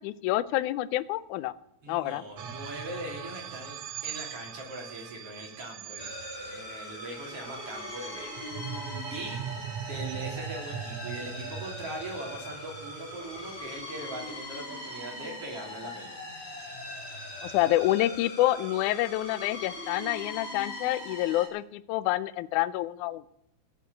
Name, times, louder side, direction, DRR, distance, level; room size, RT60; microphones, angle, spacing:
voice 1, 0.0-1.5 1.9-2.2 17.4-23.2, left 15 dB, 80° left, 15 dB, 1.8 m, -28 dB
voice 2, 1.8-6.1 6.4-8.4 9.1-9.4 9.8-16.1, right 1 dB, 45° right, -1 dB, 4.2 m, -41 dB
sound 1, 2.4-14.8, right 9 dB, 80° right, 1.3 m, -41 dB
sound 2, 6.0-21.5, left 1 dB, 15° left, 4.4 m, -41 dB
14.5 x 8.4 x 8.4 m, 0.79 s
omnidirectional pair, 4.0 m